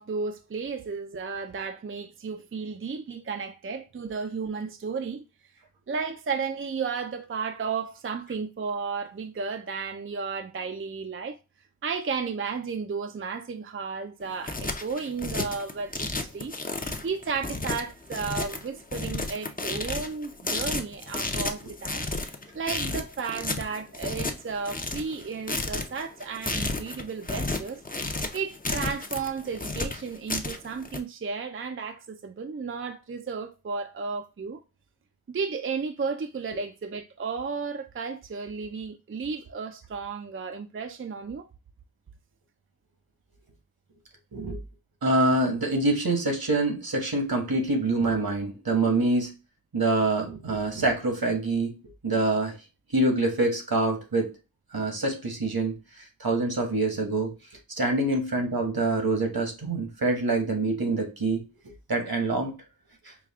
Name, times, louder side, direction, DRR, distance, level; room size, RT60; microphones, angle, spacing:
voice 1, 0.0-5.2 5.9-11.4 11.8-16.5 17.0-22.0 22.5-27.8 28.3-34.6 35.3-41.5, right 5 dB, 35° right, 0.4 m, -33 dB
sound 1, 14.2-31.0, left 2 dB, 25° left, 0.6 m, -32 dB
voice 2, 45.0-49.3 49.7-51.7 52.0-52.6 52.9-54.3 54.7-57.3 57.8-61.4 61.9-62.5, right 2 dB, 75° right, 1.3 m, -25 dB
4.9 x 2.3 x 3.4 m
wide cardioid pair, 55°, 36 cm